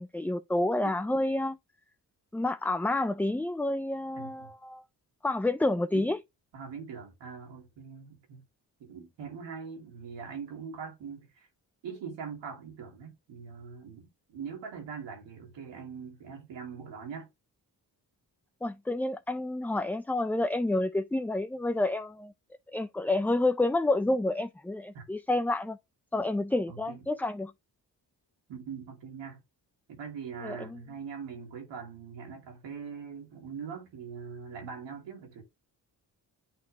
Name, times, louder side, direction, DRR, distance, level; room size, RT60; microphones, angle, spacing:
voice 1, 0.0-1.6 2.3-4.8 5.2-6.2 18.6-22.3 22.7-25.8 26.1-27.5 30.4-30.8, left 2 dB, 5° left, 0.3 m, -29 dB
voice 2, 4.2-4.5 5.9-6.1 6.5-8.4 8.8-11.5 11.8-17.3 24.9-25.0 26.7-27.0 28.5-29.4 29.9-35.4, right 6 dB, 90° right, 2.6 m, -42 dB
8.5 x 3.6 x 3.5 m
cardioid pair, 60°, 43 cm